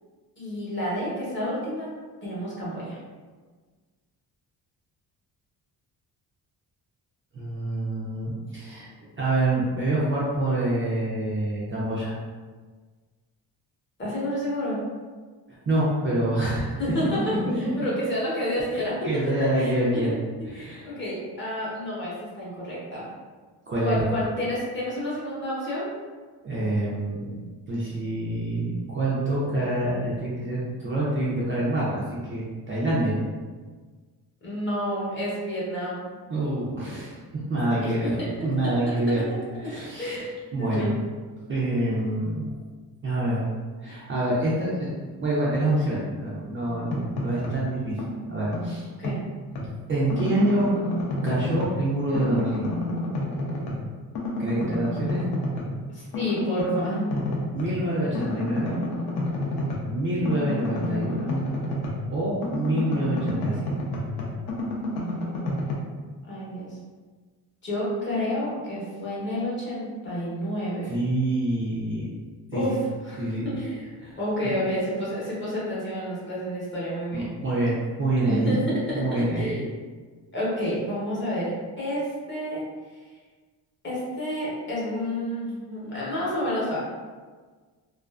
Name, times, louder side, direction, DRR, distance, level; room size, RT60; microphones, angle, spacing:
voice 1, 0.4-1.9 2.2-3.0 14.0-14.8 16.8-18.9 19.6-20.1 20.5-23.0 23.8-25.9 34.4-36.2 37.7-38.1 40.0-40.3 40.6-40.9 49.0-49.2 55.9-57.2 66.3-66.8 67.6-70.9 72.5-72.8 73.0-73.2 73.4-73.9 74.2-77.3 78.3-79.7 80.3-82.6 83.8-86.8, equal, 30° left, -7 dB, 0.8 m, -29 dB
voice 2, 7.3-8.9 9.2-12.1 15.5-16.8 18.7-20.1 20.4-20.9 23.7-24.0 26.4-27.4 27.7-33.2 36.3-37.2 37.5-39.2 39.6-40.2 40.5-41.0 41.5-42.5 43.0-43.5 43.8-44.9 45.2-48.0 48.3-48.8 49.9-50.7 51.2-52.7 54.4-55.2 57.5-58.8 59.9-61.4 62.1-63.8 70.9-72.1 72.5-72.7 73.2-73.5 74.0-74.2 74.4-74.5 77.1-78.6 78.9-79.5, right 1 dB, 30° right, -7 dB, 0.4 m, -26 dB
sound 1, 46.7-47.7 48.0-49.7 50.1-51.8 52.1-53.9 54.1-55.7 56.1-57.8 58.1-62.1 62.4-65.7, left 1 dB, 70° left, 0.6 m, -30 dB
2.4 x 2.4 x 2.2 m, 1.4 s
cardioid pair, 160°, 40 cm